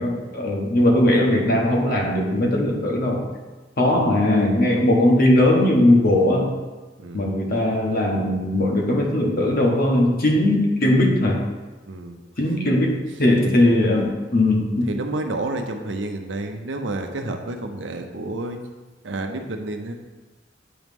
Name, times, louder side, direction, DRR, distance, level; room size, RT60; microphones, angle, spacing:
voice 1, 0.0-3.2 3.8-6.5 7.1-11.4 12.4-14.9, left 1 dB, 55° left, 0 dB, 1.2 m, -19 dB
voice 2, 7.0-7.3 11.9-12.2 13.4-13.5 14.9-18.6 19.0-19.9, right 2 dB, 90° right, 5 dB, 0.7 m, -29 dB
8.7 x 3.1 x 5.3 m, 1.2 s
head